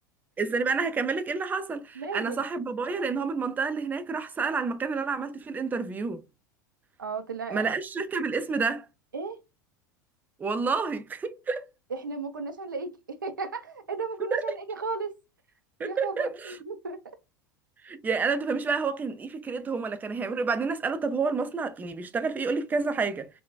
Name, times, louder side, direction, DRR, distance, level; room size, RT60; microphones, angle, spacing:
voice 1, 0.4-6.2 7.5-8.9 10.4-11.7 14.3-14.4 15.8-16.5 17.8-23.3, right 4 dB, 15° right, 0.4 m, -29 dB
voice 2, 1.9-2.4 7.0-7.7 9.1-9.4 11.9-15.1 15.8-17.0, right 4 dB, 85° right, 0.6 m, -35 dB
3.8 x 2.2 x 2.2 m
figure-of-eight pair, 85°, 10 cm